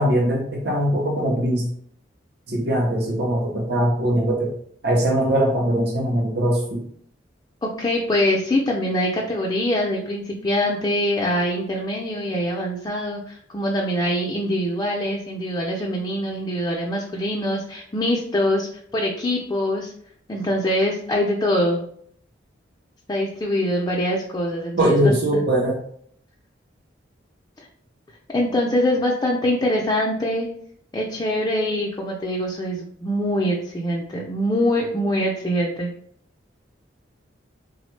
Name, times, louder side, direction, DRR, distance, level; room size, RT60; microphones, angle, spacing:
voice 1, 0.0-1.6 2.5-4.5 4.8-6.8 24.8-25.8, right 1 dB, 60° right, -1 dB, 0.6 m, -21 dB
voice 2, 7.6-19.9 20.3-21.8 23.1-25.4 27.6-27.7 28.3-30.5 30.9-35.9, left 1 dB, 20° left, -2 dB, 0.4 m, -24 dB
3.4 x 2.0 x 3.1 m, 0.63 s
head